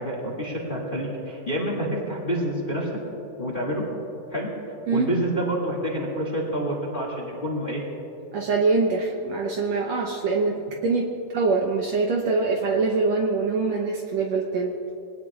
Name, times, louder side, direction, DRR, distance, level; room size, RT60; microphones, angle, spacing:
voice 1, 0.0-2.9 3.4-3.8 4.3-4.5 4.9-7.8, equal, 20° left, -2 dB, 1.9 m, -28 dB
voice 2, 8.3-10.6 10.8-11.1 11.3-14.7, right 4 dB, 65° right, 0 dB, 1.8 m, -24 dB
23.0 x 18.5 x 2.4 m, 2.9 s
omnidirectional pair, 3.7 m